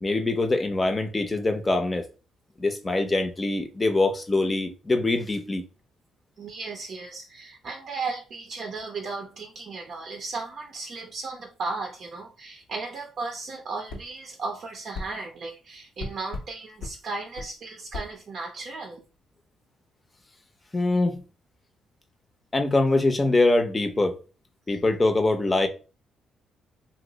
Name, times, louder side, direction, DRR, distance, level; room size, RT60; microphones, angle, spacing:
voice 1, 0.0-2.0 2.6-5.6 20.7-21.2 22.5-24.2 24.7-25.7, left 2 dB, 20° left, 0.6 m, -23 dB
voice 2, 6.4-19.0, right 3 dB, 55° right, 0.6 m, -35 dB
sound 1, 13.9-14.1 14.9-15.1 16.0-16.5 16.8-17.0 17.4-17.5 17.9-18.1, left 2 dB, 80° left, 0.7 m, -35 dB
2.9 x 2.0 x 3.8 m
cardioid pair, 90°, 0 cm